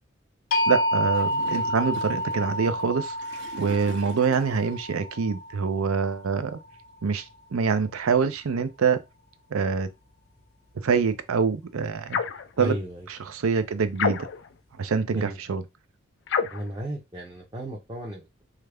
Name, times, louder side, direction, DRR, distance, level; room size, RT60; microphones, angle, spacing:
sound 1, 0.5-6.5, equal, 85° left, 0.8 m, -29 dB
voice 1, 0.7-3.1 3.6-6.6 7.0-7.2 7.5-9.0 9.5-9.9 10.8-12.2 12.6-12.7 13.1-14.3 14.8-15.6, right 5 dB, 85° right, 0.5 m, -25 dB
Gurgling / Toilet flush, 1.1-4.9, right 3 dB, 55° right, 0.8 m, -45 dB
sound 2, 12.1-12.5 14.0-14.5 16.3-16.7, left 6 dB, 55° left, 0.3 m, -27 dB
voice 2, 12.6-13.1 15.1-15.4 16.5-18.4, equal, 20° right, 0.5 m, -34 dB
3.2 x 2.4 x 3.3 m
head